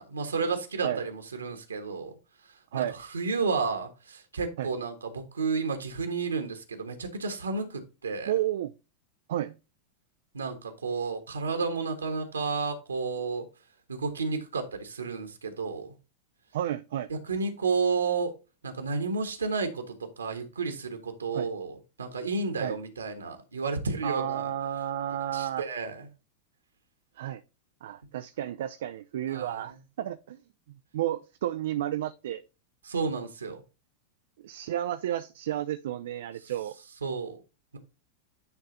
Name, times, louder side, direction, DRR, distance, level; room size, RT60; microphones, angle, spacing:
voice 1, 0.0-2.2 2.4-8.3 10.3-13.4 13.9-15.9 17.1-18.3 18.6-24.5 25.3-26.1 29.3-29.8 32.8-33.6 36.4-36.5 37.0-37.4, right 4 dB, 75° right, 1.3 m, -32 dB
voice 2, 8.3-8.7 9.3-9.5 16.5-17.1 21.3-21.5 22.6-22.8 24.0-25.6 27.2-27.4 27.8-30.4 30.9-32.4 34.4-36.8, right 12 dB, 60° right, 0.4 m, -32 dB
9.7 x 3.3 x 3.9 m
figure-of-eight pair, 90°, 0 cm